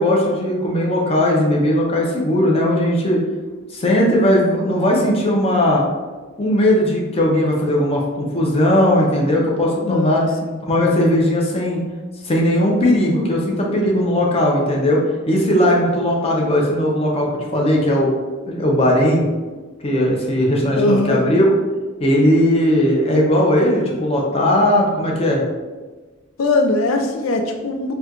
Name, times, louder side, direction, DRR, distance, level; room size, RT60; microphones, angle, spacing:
voice 1, 0.0-3.2 3.7-5.8 6.4-10.2 10.6-11.8 12.2-18.1 18.5-19.3 19.8-21.5 22.0-25.4, left 1 dB, 30° left, -1 dB, 0.6 m, -18 dB
voice 2, 9.8-10.6 20.8-21.3 26.4-27.9, left 2 dB, 80° left, 4 dB, 0.3 m, -20 dB
4.2 x 2.3 x 2.4 m, 1.3 s
head